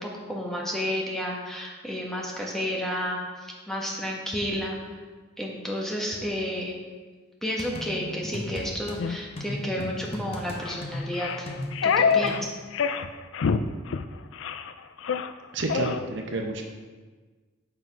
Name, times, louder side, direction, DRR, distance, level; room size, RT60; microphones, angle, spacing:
voice 1, 0.0-4.8 5.4-6.7 7.4-11.5 11.8-12.4, equal, ahead, -3 dB, 1.1 m, -31 dB
sound 1, 7.6-9.0 9.4-12.5, left 1 dB, 30° left, 0.8 m, -36 dB
sound 2, 9.0-9.2 9.7-9.9 10.6-10.8 11.1-12.4 12.7-13.1 13.3-13.6 13.9-14.1 14.4-14.7 15.0-15.3 15.7-16.0, left 6 dB, 70° left, 0.4 m, -26 dB
voice 2, 15.5-16.6, right 2 dB, 60° right, 3 dB, 0.8 m, -29 dB
7.9 x 5.7 x 4.6 m, 1.4 s
head